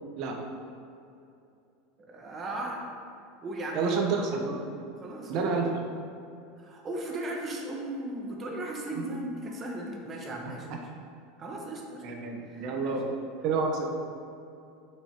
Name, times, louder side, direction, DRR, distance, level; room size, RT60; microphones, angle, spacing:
voice 1, 2.0-2.9 3.4-4.0 5.0-5.8 6.6-10.9 11.4-12.0 12.5-12.9, right 1 dB, 25° right, 0 dB, 1.1 m, -37 dB
voice 2, 3.7-4.6 5.3-5.8 9.0-9.1 12.0-13.2 13.4-13.9, right 4 dB, 55° right, 1 dB, 1.0 m, -29 dB
5.7 x 5.4 x 4.5 m, 2.6 s
supercardioid pair, 135°, 0 cm